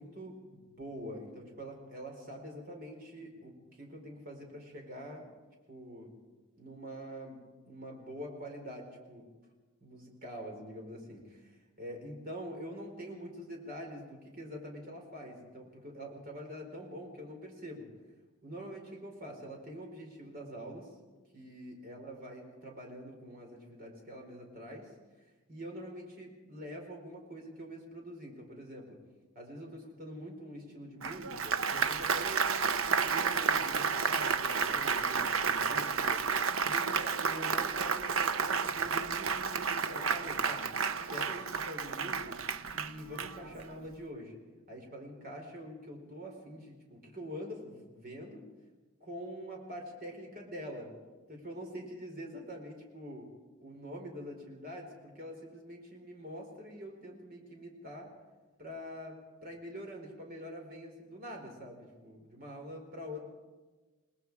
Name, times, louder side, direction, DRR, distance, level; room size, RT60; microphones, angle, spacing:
voice 1, 0.0-5.3 5.7-6.1 6.5-9.3 9.8-17.9 18.4-20.9 21.3-24.9 25.5-29.0 29.3-32.5 32.9-36.2 36.6-40.7 41.1-42.4 42.7-44.4 44.7-48.4 49.0-50.9 51.3-53.3 53.6-58.1 58.6-59.1 59.4-63.2, equal, 45° right, 1 dB, 4.6 m, -45 dB
Applause, 31.0-43.7, right 6 dB, 80° right, 0.8 m, -31 dB
28.0 x 19.5 x 4.8 m, 1.3 s
head